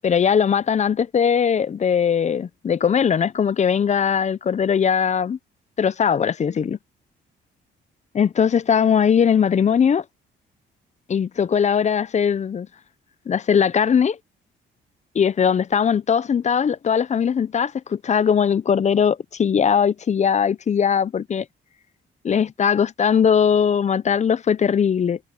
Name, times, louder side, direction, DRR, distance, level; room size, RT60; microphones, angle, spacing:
voice 1, 0.0-5.4 5.8-6.8 8.1-10.0 11.1-12.7 13.3-14.2 15.1-21.5 22.2-25.2, left 7 dB, 35° left, 0.6 m, -20 dB
cardioid pair, 90°, 20 cm